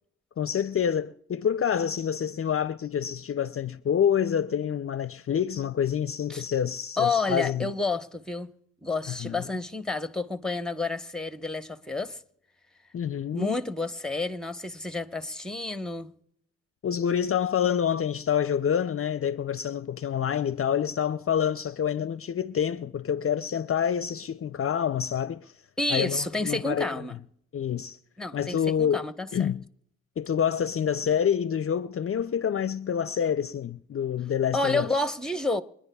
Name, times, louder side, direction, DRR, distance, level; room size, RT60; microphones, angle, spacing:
voice 1, 0.4-7.7 9.1-9.5 12.9-13.5 16.8-25.5 25.9-26.9 27.5-28.0 28.3-29.6 30.2-34.9, left 8 dB, 45° left, 0.5 m, -27 dB
voice 2, 7.0-8.5 8.8-12.2 13.3-16.1 25.8-27.2 28.2-29.5 34.5-35.6, left 3 dB, ahead, 1.0 m, -29 dB
26.0 x 10.0 x 2.3 m
supercardioid pair, 45°, 30 cm